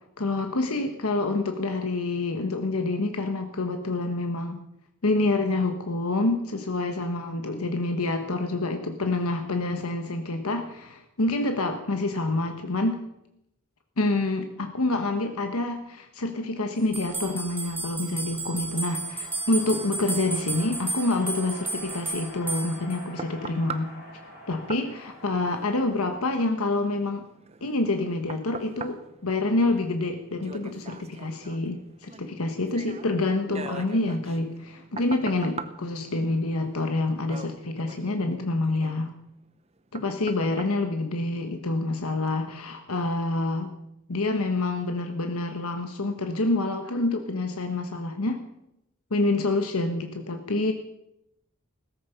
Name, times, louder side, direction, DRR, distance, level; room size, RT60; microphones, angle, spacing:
voice 1, 0.2-4.6 5.0-13.0 14.0-23.9 24.5-27.2 27.6-39.1 39.9-43.7 44.1-48.4 49.1-50.7, left 2 dB, 90° left, 6 dB, 1.3 m, -27 dB
sound 1, 16.9-23.0, right 3 dB, 10° right, 2.9 m, -33 dB
sound 2, 17.5-27.1, left 1 dB, 40° left, 6.5 m, -47 dB
sound 3, 22.5-41.8 42.3-42.4, right 4 dB, 30° right, 0.8 m, -43 dB
16.5 x 14.5 x 5.7 m, 0.85 s
head